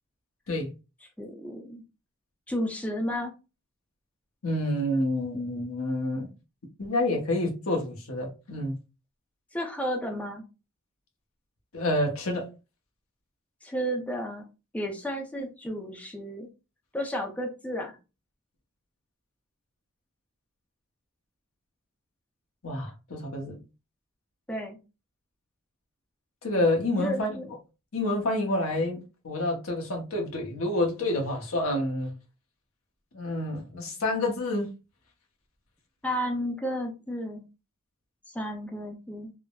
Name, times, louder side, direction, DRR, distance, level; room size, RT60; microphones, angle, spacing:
voice 1, 1.2-1.8 2.5-3.3 9.5-10.4 13.6-14.4 14.7-16.5 16.9-18.0 24.5-24.8 27.0-27.5 36.0-37.4 38.3-39.3, equal, 5° left, 0.5 m, -32 dB
voice 2, 4.4-6.3 6.8-8.7 11.7-12.5 22.6-23.6 26.4-27.4 27.9-32.1 33.1-34.7, left 1 dB, 85° left, 0.9 m, -28 dB
3.4 x 2.1 x 2.3 m
head